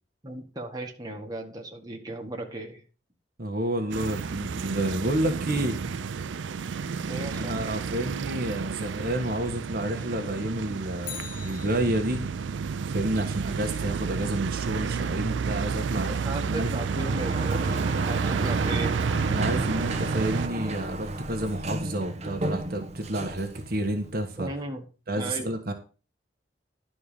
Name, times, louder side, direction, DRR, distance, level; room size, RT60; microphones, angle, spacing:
voice 1, 0.2-2.8 7.1-7.6 16.2-19.0 24.4-24.8 25.2-25.5, right 1 dB, 20° right, 1 dB, 1.8 m, -36 dB
voice 2, 3.4-5.8 7.4-12.3 12.9-16.7 19.3-24.5 25.1-25.7, right 1 dB, 55° right, 4 dB, 1.3 m, -30 dB
sound 1, 3.9-20.5, right 5 dB, 85° right, 0.4 m, -30 dB
Bicycle, 11.0-12.4 20.7-20.8, left 10 dB, 50° left, 1.0 m, -42 dB
Sliding door, 16.7-24.4, right 1 dB, 40° right, 1.0 m, -34 dB
11.0 x 4.4 x 6.8 m, 0.35 s
head